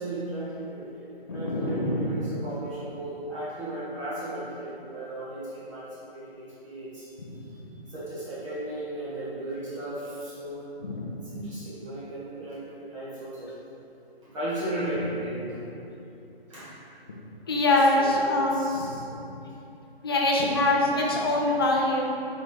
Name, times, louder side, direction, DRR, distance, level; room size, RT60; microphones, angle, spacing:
voice 1, 0.0-7.1 7.5-10.6 11.2-13.5 14.2-15.7 16.5-16.8 17.7-19.2, right 1 dB, 30° right, -10 dB, 1.4 m, -36 dB
voice 2, 1.3-2.1 7.3-7.4 10.8-11.3 17.5-19.1 20.0-22.0, left 2 dB, 25° left, -2 dB, 0.6 m, -24 dB
5.8 x 4.5 x 3.7 m, 2.8 s
figure-of-eight pair, 145°, 31 cm